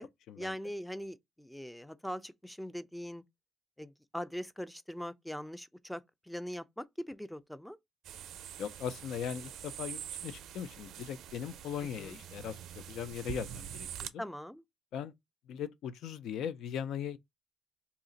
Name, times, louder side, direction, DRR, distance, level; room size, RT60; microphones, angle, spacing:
voice 1, 0.4-3.2 3.8-7.8 11.8-12.2 14.2-14.6, equal, 5° left, 0.4 m, -41 dB
sound 1, 8.0-14.1, right 10 dB, 80° right, 0.4 m, -45 dB
voice 2, 8.6-14.2 14.9-15.1 15.5-17.2, left 8 dB, 80° left, 0.4 m, -39 dB
2.8 x 2.4 x 3.9 m
cardioid pair, 90°, 0 cm